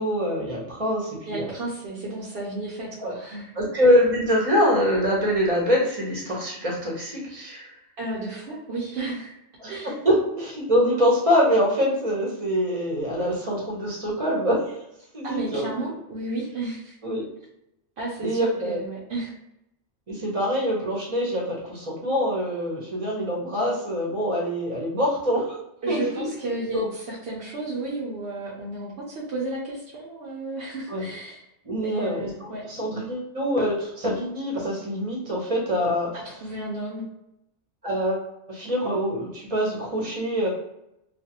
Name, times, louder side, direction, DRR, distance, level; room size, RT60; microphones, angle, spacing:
voice 1, 0.0-1.5 3.0-3.2 3.6-7.7 9.6-14.8 15.1-15.7 17.0-17.3 18.2-18.8 20.1-25.6 25.9-26.3 26.7-26.9 30.9-31.1 31.6-36.1 37.8-38.2 38.5-40.5, equal, 35° right, -3 dB, 0.9 m, -24 dB
voice 2, 1.3-3.5 8.0-9.3 9.7-10.0 15.2-17.0 18.0-19.3 25.8-31.4 31.8-32.6 36.1-37.1, right 2 dB, 65° right, -6 dB, 0.9 m, -33 dB
2.5 x 2.4 x 2.8 m, 0.84 s
omnidirectional pair, 1.2 m